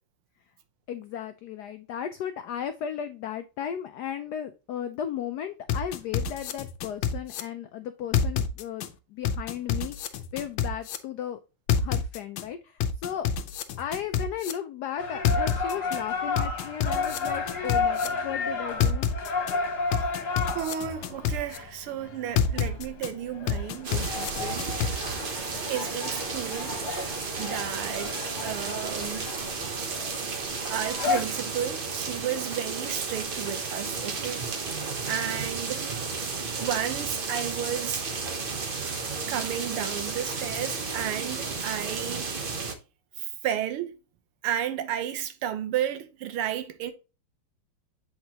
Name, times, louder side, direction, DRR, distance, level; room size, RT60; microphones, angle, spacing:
voice 1, 0.9-11.4 11.8-13.3 13.8-19.1, left 9 dB, 90° left, 0.8 m, -35 dB
sound 1, 5.7-7.4 8.1-8.9 9.2-11.0 11.7-12.4 12.8-14.5 15.2-16.0 16.4-18.1 18.8-19.5 19.9-21.6 22.4-23.1 23.5-24.9, left 8 dB, 70° left, 1.4 m, -27 dB
sound 2, 15.0-31.2, left 4 dB, 55° left, 1.6 m, -33 dB
voice 2, 20.6-24.7 25.7-26.8 27.1-28.1 28.4-29.3 30.7-34.5 35.1-35.9 36.6-38.1 39.3-42.3 43.2-44.0 44.4-46.9, right 10 dB, 85° right, 1.7 m, -33 dB
sound 3, 23.8-42.7, right 4 dB, 65° right, 0.5 m, -33 dB
8.0 x 4.5 x 2.8 m
omnidirectional pair, 2.3 m